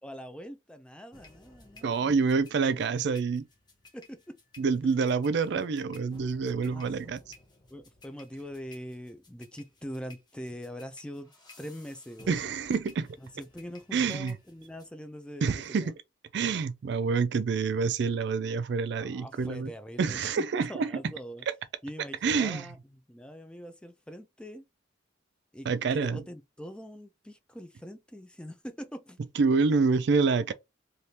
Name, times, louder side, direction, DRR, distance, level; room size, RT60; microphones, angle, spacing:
voice 1, 0.0-2.3 3.9-4.4 6.6-6.9 7.7-11.3 11.6-12.4 13.2-15.9 19.0-21.5 21.8-24.6 25.5-29.2, equal, 5° left, 0.4 m, -43 dB
sound 1, 1.1-14.9, left 2 dB, 25° left, 1.1 m, -56 dB
voice 2, 1.8-3.5 4.6-7.2 12.3-13.1 13.9-14.3 15.4-15.9 16.3-19.7 20.0-20.9 22.2-22.7 25.7-26.2 29.4-30.5, right 5 dB, 60° right, 0.4 m, -27 dB
3.4 x 2.4 x 2.8 m
head